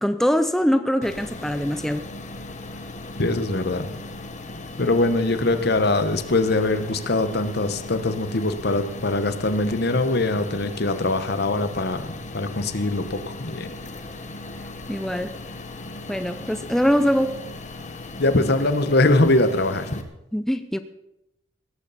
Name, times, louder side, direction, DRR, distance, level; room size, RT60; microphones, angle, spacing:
voice 1, 0.0-2.1 14.9-15.4 16.1-17.4 20.3-20.8, equal, ahead, 0.5 m, -23 dB
sound 1, 1.0-20.0, left 2 dB, 40° left, 1.3 m, -37 dB
voice 2, 3.2-3.9 4.8-13.7 18.2-20.0, left 2 dB, 60° left, 1.1 m, -22 dB
17.5 x 13.5 x 4.2 m
head